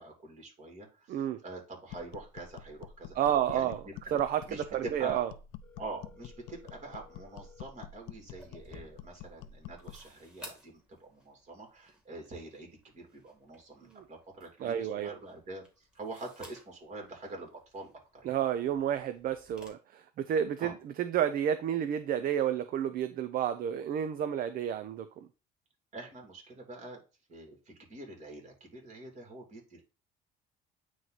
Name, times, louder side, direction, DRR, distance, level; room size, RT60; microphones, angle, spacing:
voice 1, 0.0-3.1 3.5-3.9 4.4-5.2 5.8-18.4 20.6-20.7 25.9-27.0 27.3-29.8, right 2 dB, 45° right, 2.9 m, -45 dB
voice 2, 1.1-1.4 3.1-3.8 4.1-5.3 13.9-14.0 14.6-15.2 18.2-25.3, right 9 dB, 60° right, 0.6 m, -31 dB
sound 1, 1.9-10.1, left 9 dB, 90° left, 0.5 m, -48 dB
Telephone, 5.6-7.6, left 5 dB, 10° left, 1.8 m, -58 dB
sound 2, 8.2-19.7, equal, 5° right, 2.3 m, -56 dB
9.3 x 3.1 x 4.0 m
cardioid pair, 110°, 17 cm